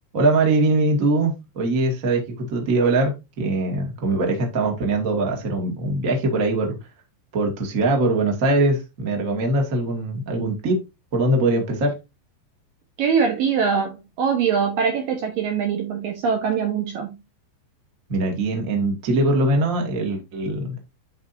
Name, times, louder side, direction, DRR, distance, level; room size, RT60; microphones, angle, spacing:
voice 1, 0.1-6.8 7.3-10.8 11.1-11.9 18.1-20.8, right 2 dB, 40° right, 1.2 m, -22 dB
voice 2, 13.0-17.2, right 6 dB, 70° right, 2.3 m, -23 dB
11.0 x 4.6 x 2.7 m
omnidirectional pair, 5.3 m